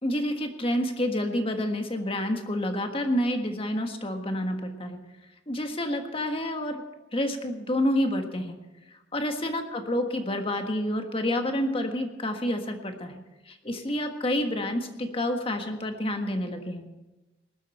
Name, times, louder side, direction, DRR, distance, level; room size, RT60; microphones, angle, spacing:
voice 1, 0.0-5.0 5.5-6.8 7.1-8.6 9.1-13.2 13.5-16.9, left 1 dB, 30° left, 5 dB, 1.5 m, -28 dB
19.5 x 12.0 x 4.3 m, 1.1 s
head